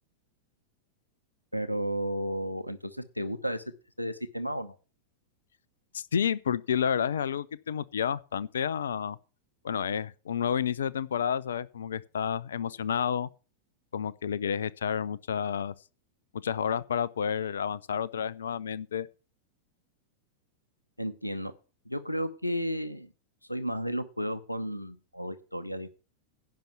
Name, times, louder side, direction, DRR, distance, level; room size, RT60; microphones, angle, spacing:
voice 1, 1.5-3.6 4.0-4.8 21.0-21.5 21.9-23.1 23.5-25.9, equal, 90° left, 0.9 m, -33 dB
voice 2, 5.9-9.2 9.6-13.3 13.9-15.7 16.4-19.1, left 8 dB, 65° left, 0.5 m, -30 dB
10.5 x 5.7 x 7.1 m
figure-of-eight pair, 90°, 0 cm